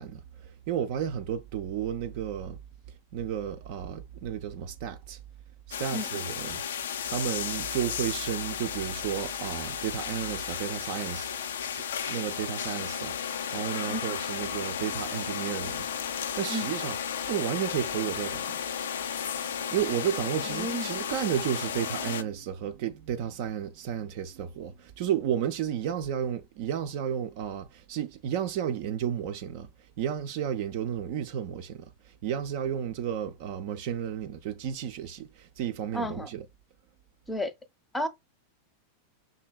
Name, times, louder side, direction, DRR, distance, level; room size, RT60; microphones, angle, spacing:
voice 1, 0.0-2.6 3.1-5.2 5.7-6.6 7.0-11.3 11.7-11.8 12.1-16.9 17.2-18.5 19.4-29.7 30.0-31.9 32.2-36.4, right 9 dB, 50° right, 0.5 m, -32 dB
sound 1, 5.7-22.2, left 8 dB, 60° left, 0.3 m, -34 dB
voice 2, 20.4-20.9 35.9-36.3 37.3-37.5 37.9-38.1, equal, 10° left, 0.7 m, -32 dB
5.9 x 2.8 x 2.3 m
figure-of-eight pair, 90°, 0 cm